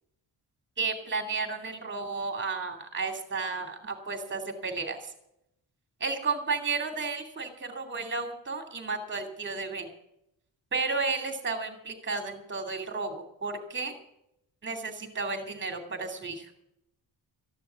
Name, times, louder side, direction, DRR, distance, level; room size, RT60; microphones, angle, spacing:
voice 1, 0.8-5.1 6.0-9.9 10.7-14.0 14.6-16.5, right 4 dB, 25° right, 5 dB, 2.6 m, -33 dB
14.5 x 11.0 x 6.9 m, 0.81 s
wide cardioid pair, 180°, 42 cm